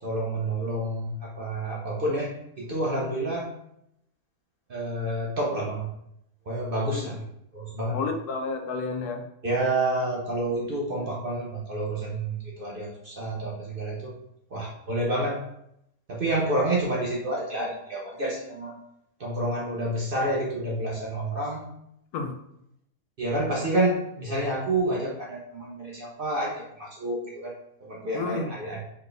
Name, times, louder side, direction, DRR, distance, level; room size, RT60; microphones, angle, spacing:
voice 1, 0.0-3.5 4.7-5.9 6.5-7.3 7.5-8.0 9.4-14.1 14.5-15.4 16.1-18.8 19.2-21.7 23.2-27.5 27.8-28.8, right 1 dB, 50° right, -2 dB, 0.7 m, -29 dB
voice 2, 7.9-9.2 22.1-22.3 28.1-28.5, left 4 dB, 80° left, 5 dB, 1.1 m, -30 dB
4.1 x 3.3 x 3.3 m, 0.76 s
omnidirectional pair, 1.6 m